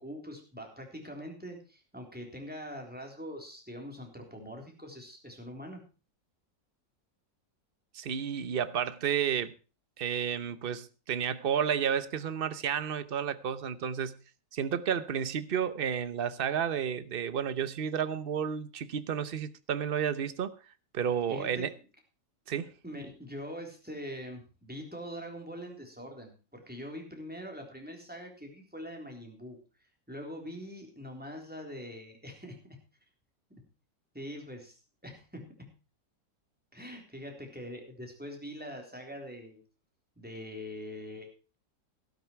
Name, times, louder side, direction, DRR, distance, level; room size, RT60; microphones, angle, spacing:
voice 1, 0.0-5.8 21.3-21.7 22.8-29.6 30.1-32.6 33.5-33.6 34.1-34.8 35.0-35.5 36.7-39.6 40.2-41.3, equal, 5° right, 3.7 m, -43 dB
voice 2, 7.9-9.5 10.0-14.1 14.5-20.5 20.9-21.7 22.5-22.7, right 8 dB, 45° right, 0.8 m, -31 dB
13.5 x 12.0 x 4.5 m
omnidirectional pair, 1.9 m